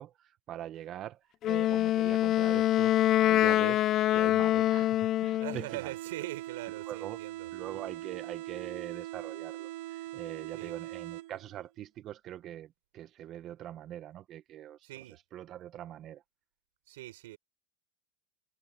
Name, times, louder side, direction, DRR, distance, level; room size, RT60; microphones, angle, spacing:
voice 1, 0.0-5.9 6.9-7.2 7.5-14.9 15.3-16.2, right 12 dB, 35° right, 0.8 m, -43 dB
Wind instrument woodwind instrument, 1.4-5.6, left 13 dB, 30° left, 0.4 m, -25 dB
voice 2, 5.4-7.5 10.5-10.7 14.8-15.2 16.9-17.4, right 18 dB, 70° right, 4.4 m, -42 dB
sound 1, 5.7-11.7, right 16 dB, 55° right, 1.4 m, -41 dB
supercardioid pair, 150°, 0 cm